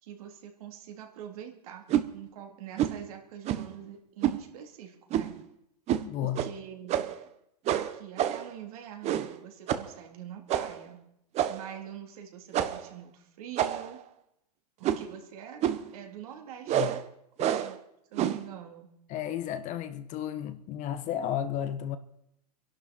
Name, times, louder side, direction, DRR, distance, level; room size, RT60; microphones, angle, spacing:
voice 1, 0.0-1.8 2.1-5.4 6.2-7.1 7.7-11.0 11.5-14.0 14.8-17.1 17.4-17.8 18.1-18.9, right 9 dB, 60° right, 3.5 m, -44 dB
sound 1, 1.9-2.1 2.8-3.0 3.4-3.7 4.2-4.4 5.1-5.4 5.9-6.1 6.3-6.5 6.9-7.2 7.7-8.5 9.0-9.4 9.7-9.9 10.5-10.8 11.3-11.7 12.5-12.9 13.6-14.0 14.8-15.1 15.6-15.9 16.7-17.0 17.4-17.8 18.2-18.5, right 11 dB, 35° right, 1.3 m, -28 dB
voice 2, 6.0-6.4 16.7-16.9 17.4-17.5 19.1-22.0, left 10 dB, 35° left, 1.3 m, -33 dB
27.0 x 11.5 x 4.6 m
hypercardioid pair, 115°, 20 cm